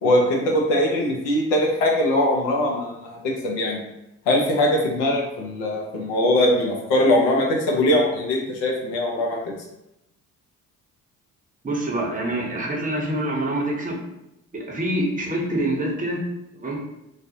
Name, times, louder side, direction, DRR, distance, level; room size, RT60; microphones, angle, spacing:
voice 1, 0.0-3.8 4.3-9.5, left 1 dB, 75° left, -1 dB, 0.7 m, -21 dB
voice 2, 11.6-14.0 14.5-16.2 16.6-16.8, right 1 dB, 20° right, -1 dB, 0.7 m, -26 dB
2.4 x 2.0 x 2.6 m, 0.87 s
hypercardioid pair, 45°, 42 cm